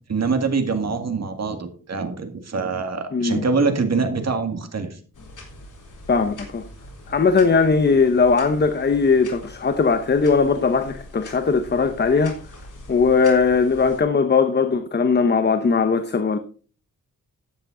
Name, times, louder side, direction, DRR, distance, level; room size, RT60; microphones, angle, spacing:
voice 1, 0.1-4.9, right 4 dB, 50° right, 2.0 m, -24 dB
voice 2, 3.1-3.4 6.1-6.6 7.1-12.4 12.9-16.4, left 5 dB, 30° left, 0.8 m, -19 dB
sound 1, 5.1-14.0, left 1 dB, 65° left, 3.9 m, -43 dB
12.0 x 9.2 x 3.8 m
wide cardioid pair, 130°, 33 cm